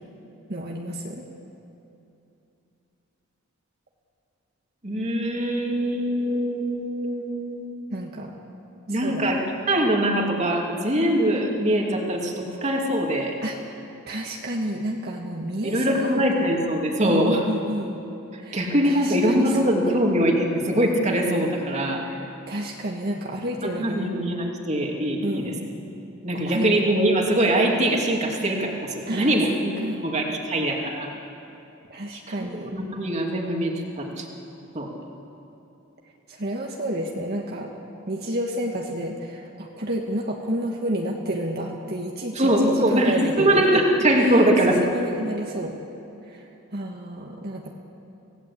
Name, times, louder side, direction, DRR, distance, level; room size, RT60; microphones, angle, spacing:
voice 1, 0.5-1.2 7.9-8.3 8.9-9.4 13.4-16.6 17.0-18.0 18.4-19.6 19.9-20.0 22.0-24.1 25.2-25.7 26.3-26.7 29.1-30.1 31.9-32.7 36.3-37.7 38.1-43.8 44.1-45.7 46.3-47.8, right 1 dB, 50° right, 0 dB, 1.7 m, -31 dB
voice 2, 4.8-7.8 8.9-13.4 15.6-17.4 18.5-22.0 23.6-25.4 26.2-29.8 30.0-31.1 32.5-34.3 34.7-34.9 42.3-44.8, right 1 dB, 35° right, 0 dB, 2.6 m, -22 dB
26.0 x 17.5 x 8.4 m, 2.9 s
head